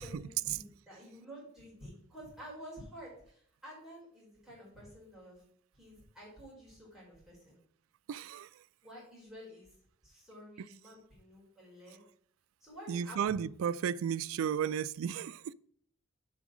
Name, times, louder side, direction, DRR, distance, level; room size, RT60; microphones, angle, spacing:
voice 1, 0.0-5.4 5.7-7.6 8.8-9.7 10.0-12.0 12.6-13.5, equal, ahead, 4.1 m, -50 dB
voice 2, 8.1-8.5 10.6-10.7 12.9-15.5, right 8 dB, 80° right, 0.3 m, -34 dB
7.4 x 5.1 x 6.0 m
head